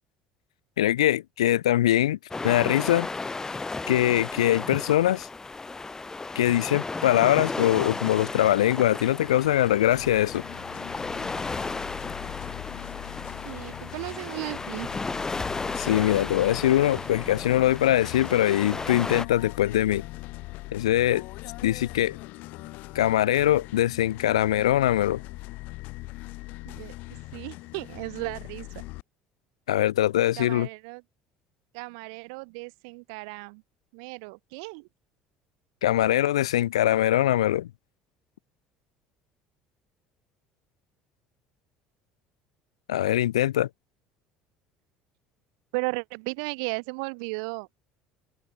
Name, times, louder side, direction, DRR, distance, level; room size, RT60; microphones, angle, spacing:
voice 1, 0.8-2.2 2.4-3.1 3.9-5.3 6.3-10.4 15.8-20.0 20.7-21.2 21.6-22.2 22.9-25.2 29.7-30.7 35.8-37.7 42.9-43.7, left 13 dB, 80° left, 0.6 m, -22 dB
sound 1, 2.3-19.3, left 3 dB, 20° left, 0.5 m, -34 dB
sound 2, 9.2-29.0, left 22 dB, 65° left, 1.9 m, -41 dB
voice 2, 13.4-14.9 26.6-26.9 27.3-28.7 30.4-31.0 31.7-33.6 33.9-34.9 45.7-47.7, right 34 dB, 70° right, 1.4 m, -35 dB
open air
hypercardioid pair, 60°, 3 cm